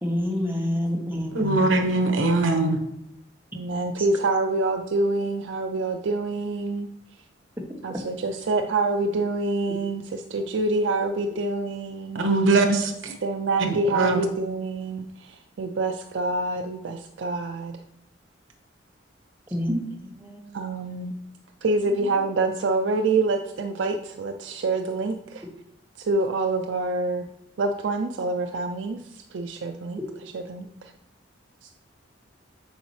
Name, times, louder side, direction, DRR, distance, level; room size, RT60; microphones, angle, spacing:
voice 1, 0.0-1.7 4.0-4.1 7.9-8.0 19.5-20.5 21.9-22.0, equal, 10° right, 1.0 m, -28 dB
voice 2, 1.3-2.8 12.1-13.1 13.7-14.2, right 2 dB, 85° right, 1.0 m, -21 dB
voice 3, 3.6-6.9 7.8-10.0 10.3-12.3 13.2-17.7 20.5-21.1 21.6-25.4 26.0-27.3 27.6-30.0 30.5-30.9, right 3 dB, 70° right, 0.4 m, -26 dB
8.1 x 5.5 x 3.2 m
head